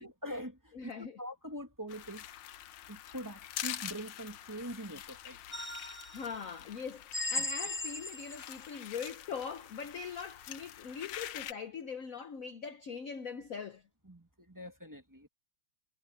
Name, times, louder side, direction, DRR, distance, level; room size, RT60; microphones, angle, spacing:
voice 1, 0.0-0.9 1.2-2.3 2.9-5.4 7.4-7.5 14.0-15.3, equal, 10° right, 2.4 m, -43 dB
voice 2, 0.7-1.2 6.1-13.8, left 6 dB, 55° left, 1.1 m, -42 dB
sound 1, 1.9-11.5, left 12 dB, 80° left, 1.7 m, -45 dB
sound 2, 5.5-6.3 7.1-8.6, left 2 dB, 15° left, 0.3 m, -37 dB
omnidirectional pair, 2.3 m